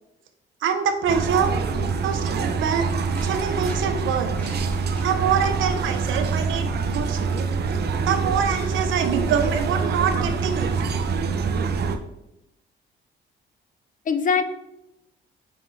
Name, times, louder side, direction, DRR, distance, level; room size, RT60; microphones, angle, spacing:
voice 1, 0.6-1.5 2.0-2.9 3.2-4.3 5.0-7.5 8.1-10.7, right 7 dB, 80° right, 7 dB, 0.9 m, -25 dB
sound 1, 1.1-12.0, right 5 dB, 55° right, 0.7 m, -25 dB
Mosin Nagant Bolt, 2.9-3.8 4.2-5.1, equal, 5° left, 1.9 m, -45 dB
voice 2, 3.7-4.1 5.7-5.8 14.1-14.5, left 6 dB, 40° left, 10 dB, 0.6 m, -25 dB
5.7 x 5.3 x 3.3 m, 0.88 s
cardioid pair, 90°, 20 cm